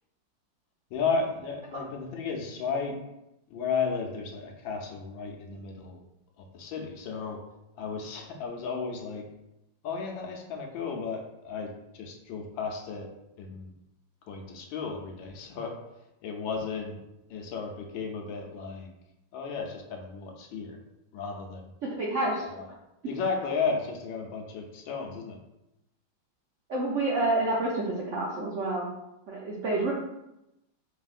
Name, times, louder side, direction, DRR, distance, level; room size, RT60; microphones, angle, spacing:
voice 1, 0.9-3.0 3.5-6.0 6.5-7.4 7.8-9.2 9.8-13.1 13.4-13.7 14.3-15.8 16.2-17.0 17.3-18.9 19.3-20.8 21.1-21.6 22.4-22.7 23.1-25.4, left 5 dB, 80° left, 2 dB, 1.4 m, -34 dB
voice 2, 21.9-22.5 26.7-28.9 29.3-29.9, right 2 dB, 80° right, -4 dB, 0.6 m, -28 dB
4.6 x 3.4 x 2.4 m, 0.88 s
omnidirectional pair, 2.2 m